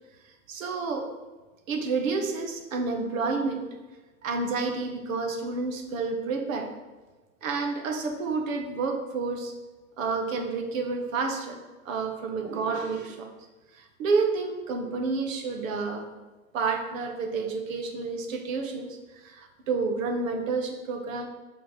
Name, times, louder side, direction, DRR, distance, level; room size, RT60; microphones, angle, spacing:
voice 1, 0.5-1.1 1.7-3.6 4.2-6.7 7.4-9.5 10.0-11.6 11.8-13.3 13.7-16.1 16.5-21.3, right 4 dB, 60° right, 5 dB, 1.2 m, -29 dB
5.5 x 3.5 x 5.6 m, 1.2 s
hypercardioid pair, 115°, 44 cm